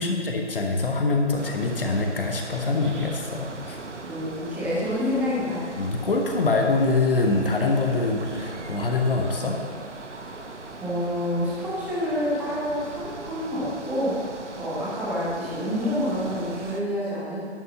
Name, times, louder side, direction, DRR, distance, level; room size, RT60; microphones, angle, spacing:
voice 1, 0.0-3.8 5.8-9.6, left 3 dB, 50° left, 2 dB, 1.3 m, -24 dB
sound 1, 1.4-16.8, right 2 dB, 80° right, 1.1 m, -39 dB
voice 2, 4.0-5.6 10.8-17.4, equal, 5° right, -9 dB, 1.6 m, -28 dB
11.0 x 5.5 x 7.0 m, 2.2 s
figure-of-eight pair, 145°, 35 cm